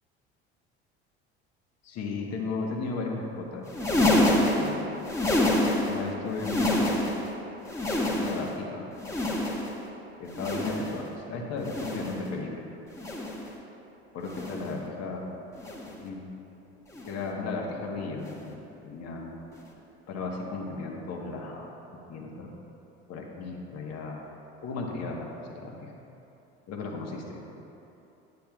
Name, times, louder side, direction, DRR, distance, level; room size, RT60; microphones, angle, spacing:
voice 1, 1.8-4.8 5.9-6.9 8.2-8.8 10.2-12.5 14.1-15.3 16.0-16.2 17.0-18.5 18.8-19.3 20.1-21.7 22.1-22.5 23.1-24.2 24.6-25.9 26.7-27.4, left 3 dB, 50° left, 0 dB, 1.4 m, -35 dB
sound 1, 3.6-6.0 6.3-7.3 7.6-8.6 9.0-9.8 10.3-11.0 11.6-12.3 12.9-13.5 14.2-14.8 15.6-16.0 16.9-17.2 18.2-18.4 19.6-19.7, left 1 dB, 10° left, 1.3 m, -27 dB
9.2 x 8.7 x 2.4 m, 3.0 s
hypercardioid pair, 80°, 32 cm